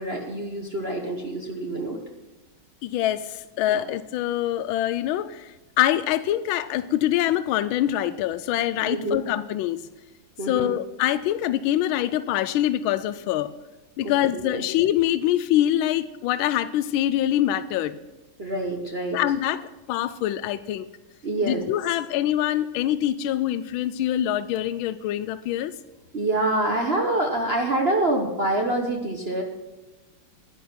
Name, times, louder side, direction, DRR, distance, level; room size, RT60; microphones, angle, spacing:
voice 1, 0.0-2.0 3.7-3.8 8.9-9.2 10.4-10.7 14.0-14.6 18.4-19.2 21.2-21.6 26.1-29.4, right 2 dB, 35° right, 2 dB, 1.2 m, -26 dB
voice 2, 2.8-9.9 10.5-13.5 14.0-18.0 19.1-20.9 21.4-25.7, left 12 dB, 85° left, 14 dB, 1.4 m, -24 dB
11.0 x 11.0 x 5.9 m, 1.1 s
omnidirectional pair, 2.2 m